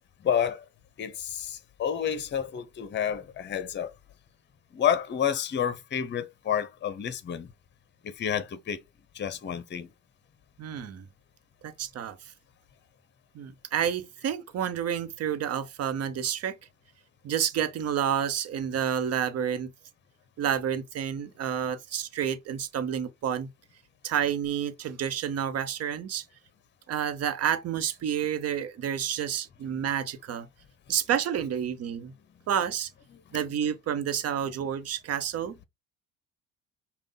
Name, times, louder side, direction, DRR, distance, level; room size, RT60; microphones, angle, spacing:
voice 1, 0.2-0.6 1.0-3.9 4.7-7.5 8.0-8.8 9.1-9.9 33.1-33.2, left 8 dB, 35° left, 0.8 m, -29 dB
voice 2, 10.6-11.0 11.6-12.2 13.3-16.6 17.2-19.7 20.4-23.5 24.0-26.2 26.9-30.5 30.9-32.1 32.5-32.9 33.3-35.6, right 9 dB, 55° right, 0.9 m, -29 dB
5.3 x 2.3 x 3.9 m
supercardioid pair, 70°, 29 cm